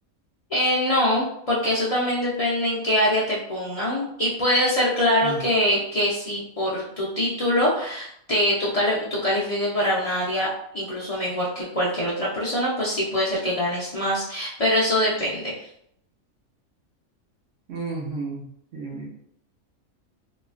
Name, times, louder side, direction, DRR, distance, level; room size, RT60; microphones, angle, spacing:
voice 1, 0.5-15.7, left 1 dB, 70° left, -7 dB, 0.3 m, -24 dB
voice 2, 17.7-18.5 18.7-19.1, right 3 dB, 65° right, -3 dB, 1.0 m, -32 dB
2.9 x 2.3 x 2.3 m, 0.71 s
omnidirectional pair, 1.4 m